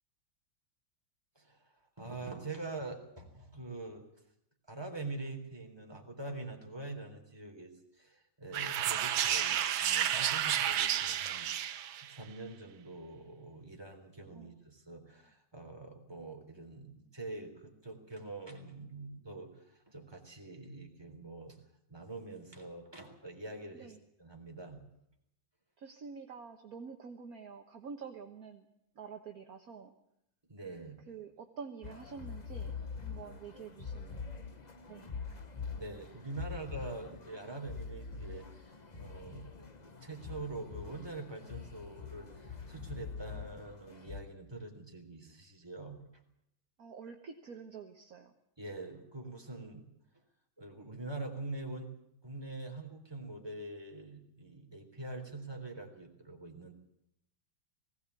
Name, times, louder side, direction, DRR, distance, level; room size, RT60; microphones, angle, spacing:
voice 1, 1.4-4.0 4.7-21.6 21.9-24.8 30.5-31.0 35.7-46.0 48.6-49.9 50.6-51.9 52.2-56.7, right 2 dB, 10° right, 3 dB, 3.7 m, -45 dB
sound 1, 8.5-12.1, right 10 dB, 85° right, 1.8 m, -31 dB
voice 2, 25.8-28.6 28.9-29.9 31.1-34.2 34.9-35.4 46.8-48.3, right 6 dB, 50° right, 5 dB, 1.6 m, -48 dB
sound 2, 31.8-44.2, left 5 dB, 25° left, 1.1 m, -44 dB
19.5 x 17.0 x 8.3 m, 0.78 s
omnidirectional pair, 2.1 m